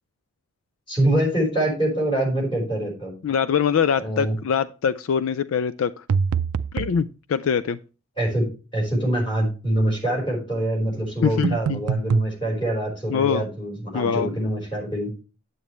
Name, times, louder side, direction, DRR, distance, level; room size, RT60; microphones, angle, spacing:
voice 1, 0.9-3.1 4.0-4.3 8.2-8.4 8.7-15.1, right 1 dB, 25° left, -1 dB, 4.6 m, -24 dB
voice 2, 3.2-6.0 6.7-7.8 11.2-11.8 13.1-13.4 13.9-14.3, left 7 dB, 70° left, 15 dB, 0.4 m, -23 dB
sound 1, 6.1-7.0 11.4-12.3, right 5 dB, 85° right, 0.4 m, -24 dB
9.1 x 8.2 x 3.1 m, 0.34 s
head